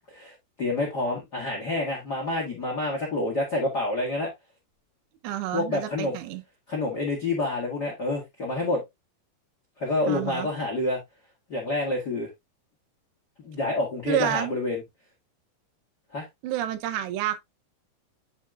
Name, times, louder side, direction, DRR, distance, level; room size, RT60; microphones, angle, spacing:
voice 1, 0.1-4.3 5.5-6.1 6.7-8.8 9.8-11.0 11.5-12.3 13.4-14.8 16.1-16.3, left 2 dB, 65° left, 1.0 m, -28 dB
voice 2, 5.2-6.4 10.1-10.5 14.1-14.5 16.4-17.4, right 12 dB, 80° right, 2.9 m, -29 dB
9.7 x 4.7 x 2.4 m
omnidirectional pair, 5.0 m